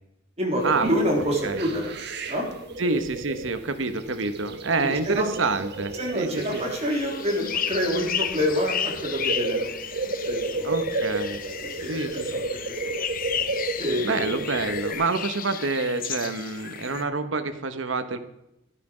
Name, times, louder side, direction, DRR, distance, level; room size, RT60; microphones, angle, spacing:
voice 1, 0.4-2.0 2.3-2.5 4.8-5.3 5.9-9.7 10.0-10.7 11.6-12.8 13.8-14.3, equal, 35° right, -1 dB, 3.3 m, -27 dB
sound 1, 0.6-14.9, right 3 dB, 60° right, 1.4 m, -33 dB
voice 2, 2.8-6.6 10.6-11.4 11.9-12.4 14.0-18.2, right 3 dB, 85° right, 10 dB, 1.2 m, -27 dB
sound 2, 6.4-17.0, left 9 dB, 45° left, 0.7 m, -33 dB
12.0 x 11.5 x 5.0 m, 0.86 s
head